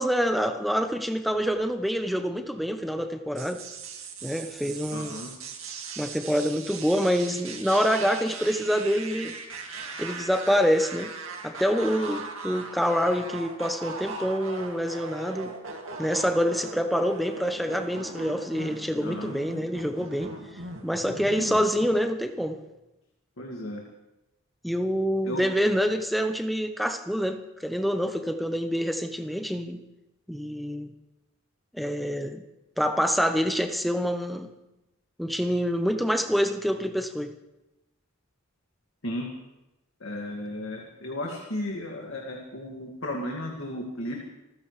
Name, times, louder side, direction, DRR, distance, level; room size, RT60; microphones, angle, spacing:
voice 1, 0.0-3.6 4.2-5.1 6.0-9.3 10.0-11.1 11.4-15.5 16.0-20.3 20.8-22.6 24.6-29.8 30.3-30.9 31.7-32.4 32.8-34.5 35.2-37.3, equal, ahead, 6 dB, 0.9 m, -26 dB
sound 1, 3.3-21.8, right 4 dB, 75° right, 2.2 m, -39 dB
voice 2, 4.9-5.3 19.0-19.4 21.1-21.6 23.4-23.8 25.2-25.4 39.0-39.3 40.0-44.2, left 1 dB, 65° left, -1 dB, 2.2 m, -34 dB
27.5 x 14.5 x 3.3 m, 0.96 s
head